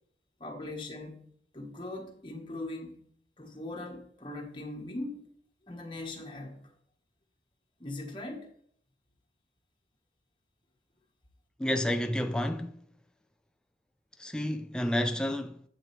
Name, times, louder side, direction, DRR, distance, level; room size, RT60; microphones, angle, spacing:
voice 1, 0.4-1.2 1.5-3.0 3.4-5.2 5.7-6.7 7.8-8.5, left 2 dB, 30° left, 1.3 m, -40 dB
voice 2, 11.6-12.8 14.2-15.6, left 1 dB, 5° left, 0.3 m, -30 dB
8.1 x 7.6 x 3.2 m
head